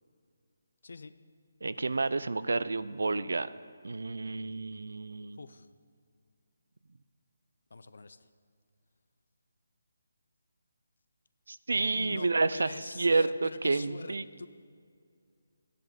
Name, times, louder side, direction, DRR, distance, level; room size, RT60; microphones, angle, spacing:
voice 1, 1.6-3.5 3.8-5.4 11.5-14.2, right 3 dB, 80° right, 15 dB, 0.5 m, -30 dB
voice 2, 5.4-5.7 7.7-8.3 12.0-14.5, left 3 dB, 70° left, 13 dB, 0.7 m, -44 dB
13.0 x 10.5 x 5.3 m, 2.2 s
hypercardioid pair, 170°, 0 cm